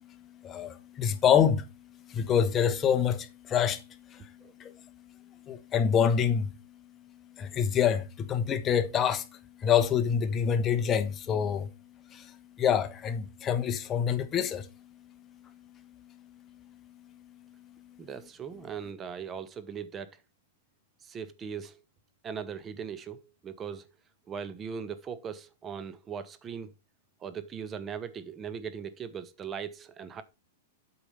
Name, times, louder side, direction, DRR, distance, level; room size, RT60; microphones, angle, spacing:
voice 1, 0.4-1.7 2.1-3.8 4.1-4.3 4.6-4.7 5.5-6.6 7.4-9.3 9.6-11.7 12.1-14.7, left 8 dB, 20° left, 1.1 m, -26 dB
voice 2, 18.0-20.2 21.0-21.8 22.2-23.9 24.3-26.7 27.2-30.2, right 7 dB, 20° right, 1.0 m, -39 dB
8.4 x 4.9 x 5.5 m
supercardioid pair, 150°, 0 cm